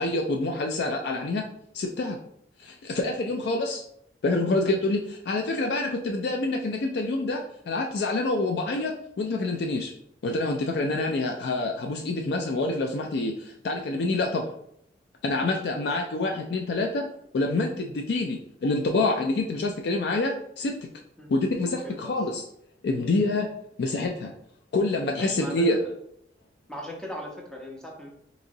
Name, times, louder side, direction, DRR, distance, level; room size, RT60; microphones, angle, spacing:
voice 1, 0.0-1.5 1.7-2.2 2.6-3.8 4.2-9.9 10.2-14.5 15.2-17.1 17.3-20.7 21.3-22.4 22.8-23.5 23.8-24.3 24.7-25.8, left 2 dB, 65° left, 2 dB, 0.3 m, -27 dB
voice 2, 21.8-22.2 23.1-23.2 25.2-25.8 26.7-28.1, equal, 5° left, -2 dB, 0.6 m, -38 dB
3.8 x 3.0 x 2.6 m, 0.72 s
head